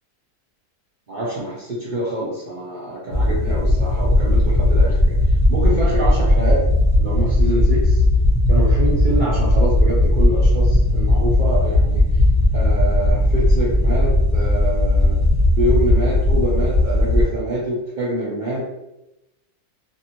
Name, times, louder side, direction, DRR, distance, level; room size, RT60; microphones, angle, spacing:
voice 1, 1.1-5.2 5.5-6.7 7.0-8.0 8.5-12.0 12.5-15.2 15.6-18.6, right 1 dB, 70° right, -6 dB, 0.4 m, -25 dB
sound 1, 3.1-17.2, left 1 dB, 25° left, 0.5 m, -17 dB
2.6 x 2.4 x 2.8 m, 0.94 s
omnidirectional pair, 1.6 m